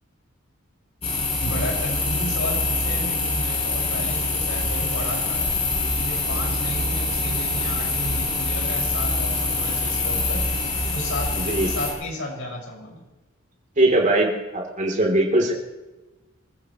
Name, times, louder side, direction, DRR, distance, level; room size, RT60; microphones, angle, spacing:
sound 1, 1.0-11.9, left 2 dB, 30° left, 5.1 m, -25 dB
voice 1, 1.4-5.4 5.9-10.4 10.9-13.0, left 1 dB, 75° left, -3 dB, 6.1 m, -33 dB
voice 2, 11.3-11.7 13.8-15.5, right 1 dB, 40° right, 0 dB, 3.5 m, -21 dB
27.0 x 15.0 x 3.2 m, 1.1 s
head